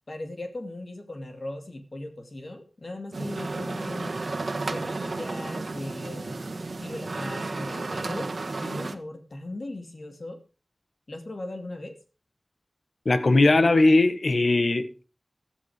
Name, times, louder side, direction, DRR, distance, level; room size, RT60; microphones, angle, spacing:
voice 1, 0.1-4.3 4.7-10.4 11.1-12.0, left 1 dB, 65° left, 2.6 m, -38 dB
sound 1, 3.1-8.9, right 3 dB, 85° right, 1.4 m, -33 dB
voice 2, 13.0-15.1, left 2 dB, 80° left, 1.5 m, -20 dB
13.5 x 12.5 x 5.1 m
wide cardioid pair, 50°, 0 cm